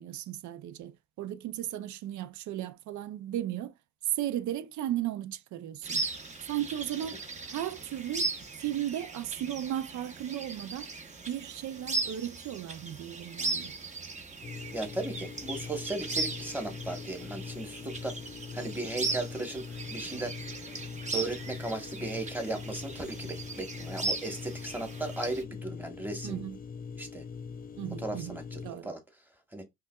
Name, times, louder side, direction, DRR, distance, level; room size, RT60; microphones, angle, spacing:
voice 1, 0.0-3.7 4.2-6.0 6.5-7.2 7.5-8.3 8.6-10.9 11.3-13.7 26.2-26.6 27.8-28.4 28.6-28.9, right 12 dB, 70° right, 0.5 m, -35 dB
sound 1, 5.8-25.4, right 3 dB, 25° right, 0.8 m, -38 dB
sound 2, 14.4-28.7, left 5 dB, 30° left, 0.4 m, -42 dB
voice 2, 14.7-18.2 18.5-20.4 21.1-26.5 27.0-27.2 28.0-29.0 29.5-29.6, right 2 dB, 5° right, 1.2 m, -36 dB
5.4 x 2.4 x 2.3 m
cardioid pair, 90°, 30 cm